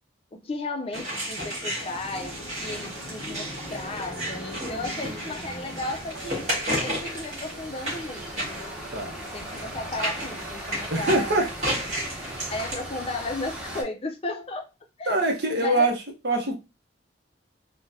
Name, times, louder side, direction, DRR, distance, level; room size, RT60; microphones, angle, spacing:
voice 1, 0.3-6.5 6.8-8.7 9.3-11.8 12.5-14.7 15.0-15.2 15.6-15.9, left 2 dB, 30° left, 0.4 m, -34 dB
sound 1, 0.9-12.7, equal, 40° right, 1.6 m, -33 dB
sound 2, 2.2-13.8, equal, 5° right, 0.8 m, -39 dB
voice 2, 10.9-11.5 15.1-15.9 16.2-16.5, right 2 dB, 60° right, 0.8 m, -23 dB
3.8 x 2.1 x 2.6 m
head